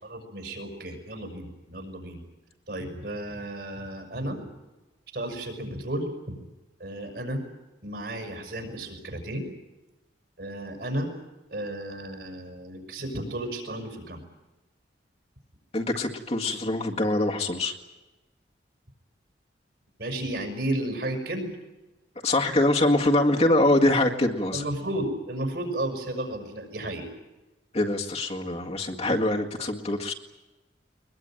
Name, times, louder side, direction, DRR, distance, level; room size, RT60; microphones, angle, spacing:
voice 1, 0.0-2.2 2.7-4.4 5.1-6.1 6.8-7.4 7.8-9.4 10.4-11.1 11.5-14.2 20.0-21.5 24.5-27.1, right 1 dB, 60° right, 4 dB, 6.2 m, -33 dB
voice 2, 15.7-17.7 22.2-24.6 27.7-30.1, left 1 dB, 35° left, 0 dB, 1.9 m, -24 dB
22.5 x 21.5 x 9.1 m, 1.1 s
head